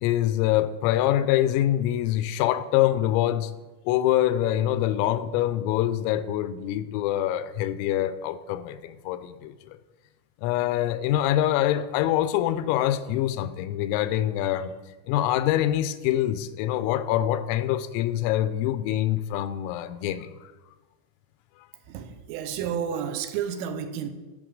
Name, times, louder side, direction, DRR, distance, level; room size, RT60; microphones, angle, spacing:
voice 1, 0.0-3.5 3.9-9.8 10.4-14.7 15.1-20.5, left 12 dB, 90° left, 13 dB, 3.3 m, -25 dB
voice 2, 21.9-24.1, right 8 dB, 85° right, 8 dB, 3.2 m, -31 dB
12.5 x 6.5 x 6.4 m, 1.2 s
omnidirectional pair, 5.9 m